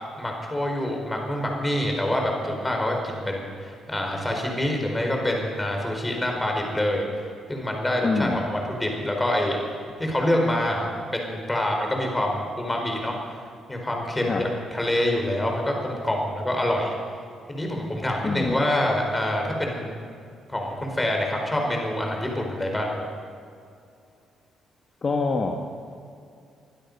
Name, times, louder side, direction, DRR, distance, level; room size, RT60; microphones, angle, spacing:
voice 1, 0.2-7.1 7.5-9.6 10.0-10.9 11.1-13.1 13.7-16.9 17.5-20.0 20.5-22.9, left 1 dB, 15° left, 1 dB, 4.6 m, -26 dB
voice 2, 8.0-8.4 14.3-14.4 18.2-18.6 25.0-25.6, left 4 dB, 40° left, 2 dB, 1.6 m, -25 dB
22.0 x 12.0 x 5.4 m, 2.4 s
cardioid pair, 90°, 0 cm